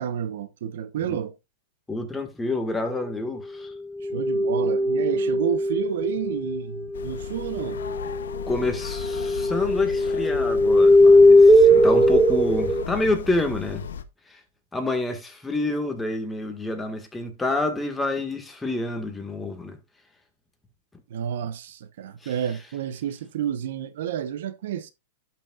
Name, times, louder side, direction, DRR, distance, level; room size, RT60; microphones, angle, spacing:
voice 1, 0.0-1.3 4.0-7.8 21.1-24.9, right 9 dB, 70° right, 0.9 m, -30 dB
voice 2, 1.9-3.7 8.5-13.8 14.3-14.4 14.7-19.8 22.2-22.3, left 2 dB, 10° left, 1.7 m, -28 dB
sound 1, 4.0-7.1 7.5-12.8, left 1 dB, 10° right, 0.6 m, -19 dB
sound 2, 6.9-14.0, left 7 dB, 90° left, 0.8 m, -36 dB
11.5 x 6.0 x 2.4 m
hypercardioid pair, 135°, 0 cm